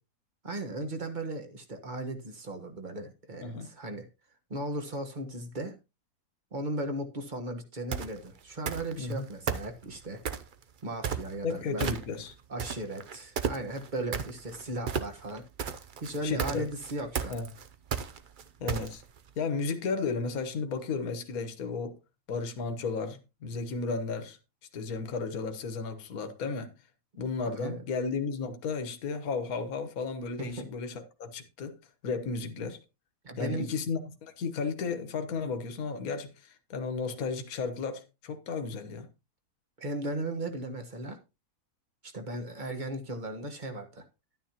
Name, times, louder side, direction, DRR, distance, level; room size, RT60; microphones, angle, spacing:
voice 1, 0.4-4.1 4.5-5.8 6.5-10.2 10.8-11.9 12.5-15.4 16.0-17.3 27.6-27.8 30.4-30.7 33.2-33.7 39.8-41.2 42.0-44.0, right 1 dB, 30° right, 1.3 m, -36 dB
sound 1, 7.9-8.2 8.7-9.1 9.5-10.5 11.0-11.5 11.8-12.3 12.6-19.2, right 7 dB, 70° right, 0.4 m, -33 dB
voice 2, 11.4-12.3 16.2-16.7 17.3-17.5 18.6-19.0 19.4-22.0 22.3-24.4 24.7-26.7 27.2-31.8 32.0-32.8 33.4-39.1, left 4 dB, 65° left, 1.6 m, -34 dB
11.5 x 9.4 x 2.9 m
omnidirectional pair, 1.7 m